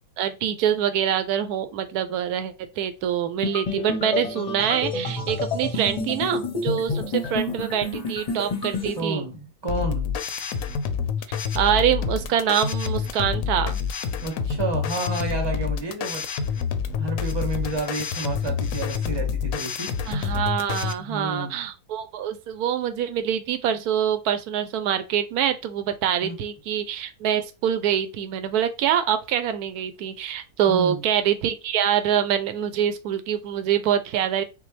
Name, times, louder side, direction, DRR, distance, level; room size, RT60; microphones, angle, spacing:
voice 1, 0.2-9.3 11.5-13.8 20.1-34.4, right 9 dB, 85° right, 1.1 m, -25 dB
sound 1, 3.4-9.0, left 3 dB, 35° left, 0.6 m, -29 dB
voice 2, 9.0-10.1 14.2-16.3 16.9-19.9 21.0-21.6 26.2-26.3 30.7-31.0, right 2 dB, 20° right, 1.2 m, -30 dB
sound 2, 9.7-20.9, left 6 dB, 70° left, 0.9 m, -27 dB
5.9 x 2.1 x 3.2 m
omnidirectional pair, 1.6 m